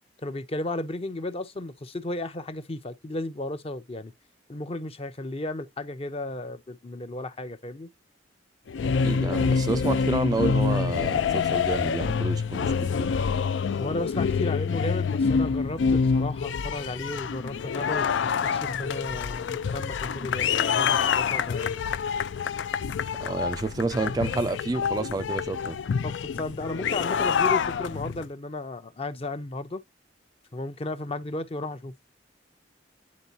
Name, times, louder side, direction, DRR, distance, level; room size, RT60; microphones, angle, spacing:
voice 1, 0.2-4.1 4.5-7.9 13.7-21.8 26.0-29.8 30.5-31.9, left 2 dB, 35° left, 0.7 m, -34 dB
sound 1, 8.7-28.2, left 6 dB, 80° left, 0.4 m, -26 dB
voice 2, 8.8-13.1 23.2-25.8, right 3 dB, 20° right, 0.3 m, -29 dB
9.5 x 3.8 x 2.7 m
head